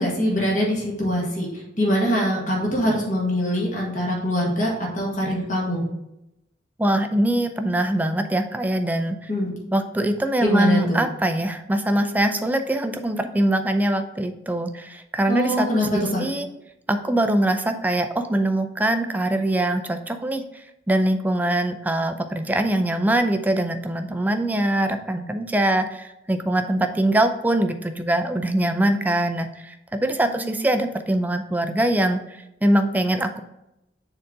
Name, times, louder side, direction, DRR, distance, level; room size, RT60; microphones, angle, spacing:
voice 1, 0.0-1.5 1.8-5.8 9.3-9.5 10.4-11.0 15.3-16.2 30.3-30.6, equal, 45° left, -3 dB, 1.7 m, -23 dB
voice 2, 6.8-9.3 9.7-16.5 16.9-20.4 20.9-32.2 32.6-33.4, right 1 dB, 10° right, 7 dB, 0.4 m, -23 dB
6.8 x 3.9 x 3.8 m, 0.88 s
head